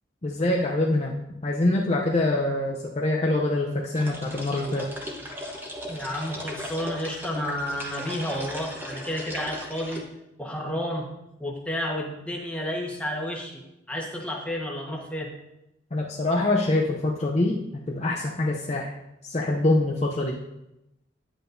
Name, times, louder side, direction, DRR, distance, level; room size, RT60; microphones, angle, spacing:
voice 1, 0.2-1.1 1.4-4.9 15.9-18.9 19.2-20.4, left 2 dB, 35° left, -1 dB, 0.6 m, -25 dB
sound 1, 4.0-10.0, equal, 10° right, 0.9 m, -37 dB
voice 2, 5.9-10.0 10.4-11.1 11.4-13.6 13.9-15.3, equal, 5° left, -2 dB, 1.2 m, -31 dB
9.7 x 7.9 x 2.6 m, 0.91 s
head